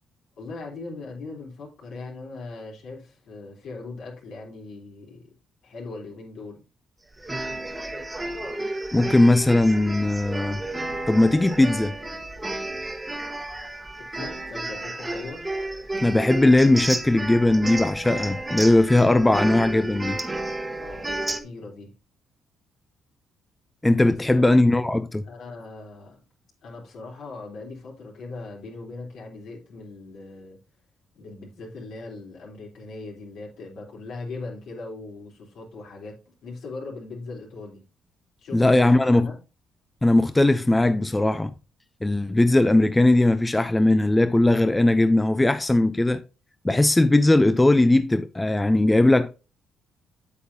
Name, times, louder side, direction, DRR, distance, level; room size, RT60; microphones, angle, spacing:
voice 1, 0.4-5.3 5.6-6.6 14.0-15.5 20.7-21.9 24.1-24.5 25.3-26.2 26.6-30.6 31.1-37.8 38.4-39.4, left 3 dB, 75° left, 3.9 m, -40 dB
sound 1, 7.2-21.4, right 2 dB, 15° right, 1.3 m, -32 dB
voice 2, 8.9-10.6 11.1-12.0 16.0-20.2 23.8-25.2 38.5-39.3 40.0-41.5 42.0-46.2 46.6-49.4, left 2 dB, 15° left, 0.6 m, -19 dB
8.2 x 7.7 x 2.8 m
cardioid pair, 90°, 0 cm